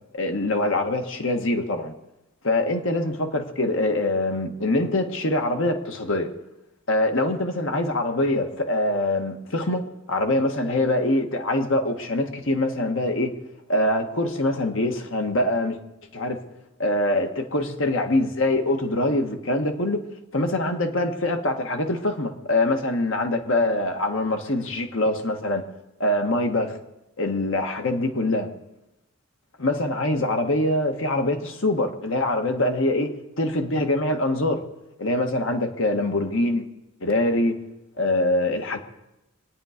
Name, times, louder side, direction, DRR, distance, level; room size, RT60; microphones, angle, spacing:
voice 1, 0.1-1.9 2.4-6.3 6.9-13.3 13.7-15.8 16.1-16.4 16.8-20.0 20.3-25.6 26.0-26.8 27.2-28.5 29.6-34.6 35.0-36.7 37.0-37.6 38.0-38.8, left 1 dB, 60° left, 4 dB, 1.6 m, -24 dB
25.5 x 9.6 x 5.1 m, 0.94 s
head